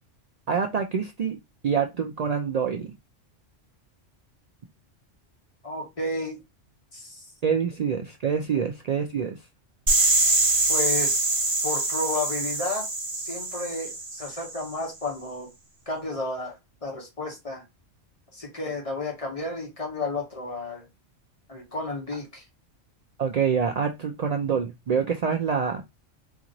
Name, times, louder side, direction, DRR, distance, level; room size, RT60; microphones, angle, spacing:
voice 1, 0.5-1.4 1.6-2.9 7.4-9.4 23.2-25.8, right 6 dB, 80° right, 0.3 m, -26 dB
voice 2, 5.6-6.4 6.9-7.2 10.7-11.3 11.6-12.9 13.1-15.5 15.9-17.6 18.3-20.8 21.5-22.4, left 2 dB, 30° left, 1.0 m, -32 dB
sound 1, 9.9-14.6, right 2 dB, 30° right, 0.7 m, -24 dB
2.9 x 2.5 x 3.8 m
omnidirectional pair, 1.3 m